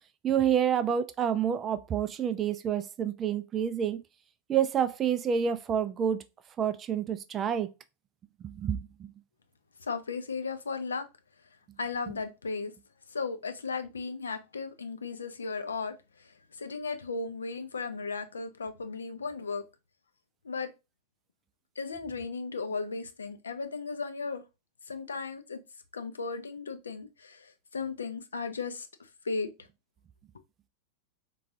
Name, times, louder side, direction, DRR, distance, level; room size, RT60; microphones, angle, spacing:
voice 1, 0.2-4.0 4.5-6.2 6.6-7.7 8.4-9.1, right 8 dB, 25° right, 0.3 m, -28 dB
voice 2, 9.8-11.0 11.8-12.7 13.1-15.9 16.5-19.6 20.4-20.7 21.8-24.4 24.9-25.6 25.9-28.9 29.2-29.5, left 4 dB, 70° left, 0.4 m, -35 dB
3.8 x 2.3 x 2.6 m
figure-of-eight pair, 90°, 0 cm